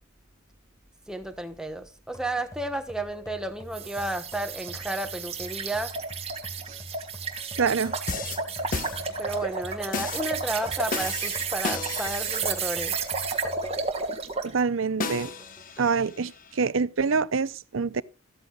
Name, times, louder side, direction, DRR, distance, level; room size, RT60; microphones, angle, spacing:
voice 1, 1.1-5.9 9.2-13.0, right 1 dB, 5° right, 1.2 m, -32 dB
sound 1, 2.1-14.1 14.5-14.6 15.4-16.0, equal, 15° left, 2.1 m, -45 dB
sound 2, 3.7-14.5, right 5 dB, 30° right, 1.6 m, -32 dB
voice 2, 7.6-8.0 14.4-15.3 15.8-18.0, right 5 dB, 65° right, 0.6 m, -26 dB
sound 3, 7.8-9.4 9.9-10.3 10.9-12.8 15.0-16.6, left 4 dB, 40° left, 1.1 m, -34 dB
14.5 x 13.5 x 2.4 m
head